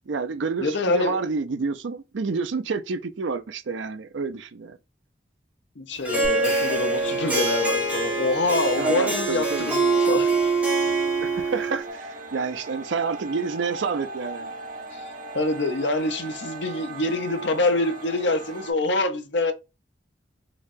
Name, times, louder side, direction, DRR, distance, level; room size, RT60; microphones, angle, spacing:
voice 1, 0.1-4.8 8.8-9.7 11.2-14.5, right 4 dB, 80° right, 0.5 m, -29 dB
voice 2, 0.6-1.2 5.8-10.5 14.9-19.5, left 2 dB, 70° left, 0.7 m, -26 dB
Harp, 6.0-11.9, right 3 dB, 10° right, 1.2 m, -24 dB
sound 1, 6.2-7.8, left 1 dB, 10° left, 1.6 m, -38 dB
sound 2, 11.8-18.7, right 2 dB, 45° right, 0.9 m, -38 dB
3.9 x 3.1 x 2.6 m
head